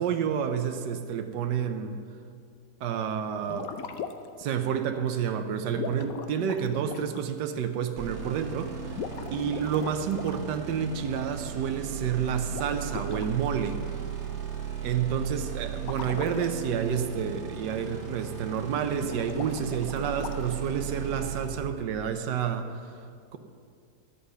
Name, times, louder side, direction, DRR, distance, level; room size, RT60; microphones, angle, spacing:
voice 1, 0.0-2.0 2.8-3.7 4.4-9.0 9.3-13.8 14.8-22.7, right 8 dB, 80° right, 7 dB, 1.4 m, -29 dB
sound 1, 3.4-4.4 5.7-7.2 8.9-10.4 12.5-13.2 15.8-16.5 18.9-20.7, left 7 dB, 65° left, 1.0 m, -38 dB
sound 2, 8.0-21.5, right 8 dB, 45° right, 1.6 m, -37 dB
11.5 x 8.0 x 6.7 m, 2.2 s
omnidirectional pair, 1.8 m